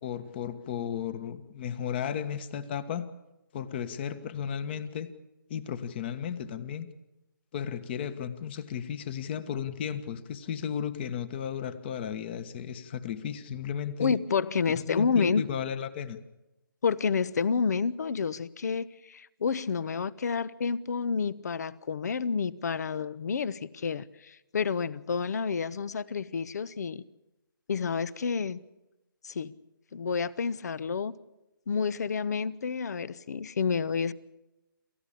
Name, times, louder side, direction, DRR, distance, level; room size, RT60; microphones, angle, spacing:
voice 1, 0.0-3.1 3.5-5.1 5.5-6.9 7.5-14.2 14.9-16.2, left 8 dB, 30° left, 13 dB, 1.4 m, -34 dB
voice 2, 14.0-15.5 16.8-27.0 27.7-28.6 29.2-29.5 29.9-31.1 31.7-34.1, left 5 dB, 50° left, 21 dB, 1.0 m, -29 dB
28.0 x 14.5 x 8.5 m, 0.97 s
figure-of-eight pair, 150°, 12 cm